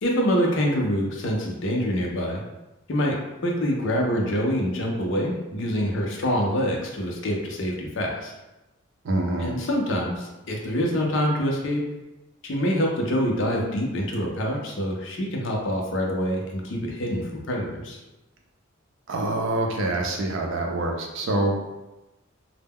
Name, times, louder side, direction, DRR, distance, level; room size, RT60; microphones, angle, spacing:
voice 1, 0.0-2.4 2.9-3.2 3.4-8.3 9.4-11.8 12.4-18.0, equal, 60° left, 0 dB, 0.5 m, -25 dB
voice 2, 9.0-9.5 19.1-21.6, right 2 dB, 65° right, 1 dB, 0.4 m, -25 dB
2.1 x 2.0 x 3.5 m, 1.0 s
head